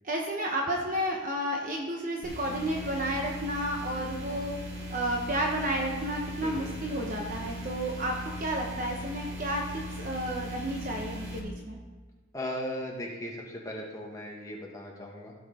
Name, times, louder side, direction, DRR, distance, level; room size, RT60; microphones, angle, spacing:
voice 1, 0.0-4.5 4.9-11.8, right 1 dB, 40° right, 0 dB, 1.1 m, -31 dB
sound 1, 2.2-11.4, equal, 60° right, 2.3 m, -39 dB
voice 2, 6.4-6.8 12.3-15.3, equal, 15° left, -2 dB, 1.7 m, -37 dB
16.0 x 5.9 x 4.3 m, 1.4 s
head